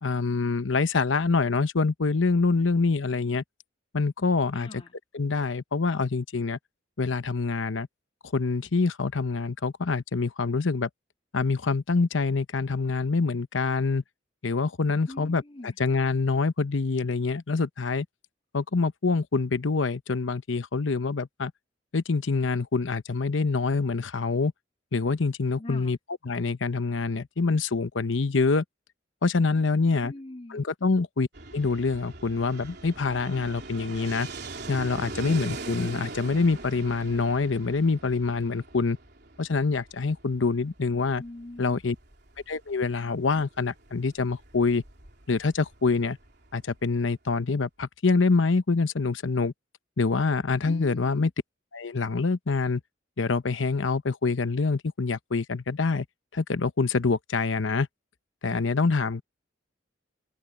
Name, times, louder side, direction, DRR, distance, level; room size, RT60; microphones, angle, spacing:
voice 1, 0.0-3.4 3.9-4.7 5.1-6.6 7.0-7.9 8.3-10.9 11.3-14.0 14.4-18.1 18.5-21.5 21.9-24.5 24.9-26.0 26.3-28.6 29.2-30.1 30.5-31.3 31.5-34.3 34.7-39.0 39.4-41.2 41.6-41.9 42.5-44.8 45.3-46.2 46.5-49.5 50.0-51.3 51.7-52.8 53.2-56.1 56.3-57.9 58.4-59.2, left 4 dB, 85° left, 0.9 m, -26 dB
voice 2, 4.5-5.0 15.1-15.8 25.6-26.0 30.0-30.6 41.1-41.8 50.6-51.3, left 1 dB, 30° left, 2.1 m, -42 dB
Fixed-wing aircraft airplane, 31.3-47.1, right 3 dB, 60° right, 3.7 m, -42 dB
head